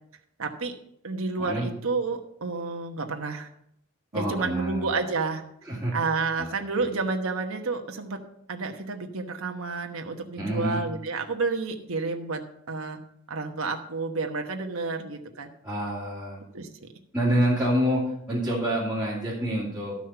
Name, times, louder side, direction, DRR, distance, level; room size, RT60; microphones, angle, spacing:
voice 1, 0.4-0.7 1.0-3.5 4.1-5.4 5.9-8.2 8.5-12.4 12.7-13.0 13.3-15.5 16.5-16.9, right 4 dB, 80° right, 4 dB, 1.1 m, -30 dB
voice 2, 4.1-4.9 5.6-6.0 6.4-6.5 6.8-6.9 10.4-10.8 15.6-16.4 17.1-20.0, right 1 dB, 5° right, -10 dB, 2.8 m, -27 dB
13.0 x 6.3 x 5.7 m, 0.72 s
head